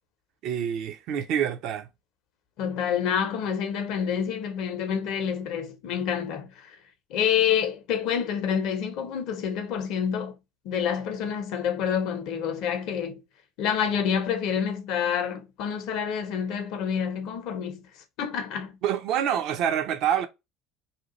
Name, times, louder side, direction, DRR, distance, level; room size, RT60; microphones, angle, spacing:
voice 1, 0.4-1.9 18.8-20.3, right 9 dB, 55° right, 0.5 m, -26 dB
voice 2, 2.6-6.8 7.1-10.4 10.6-13.2 13.6-17.8 18.2-18.7, left 8 dB, 60° left, 0.7 m, -28 dB
2.8 x 2.3 x 2.9 m
figure-of-eight pair, 60°, 0 cm